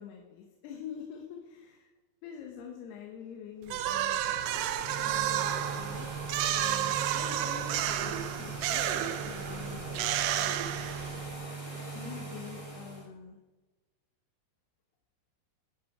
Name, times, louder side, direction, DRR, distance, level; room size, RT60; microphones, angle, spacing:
voice 1, 0.0-1.9 2.2-4.3 4.9-6.1 6.5-10.6 11.9-13.4, left 8 dB, 85° left, 1 dB, 3.2 m, -46 dB
sound 1, 3.7-11.3, right 12 dB, 90° right, 2.8 m, -31 dB
sound 2, 4.1-13.0, right 3 dB, 10° left, 2.3 m, -40 dB
13.0 x 10.5 x 4.8 m, 1.1 s
omnidirectional pair, 4.6 m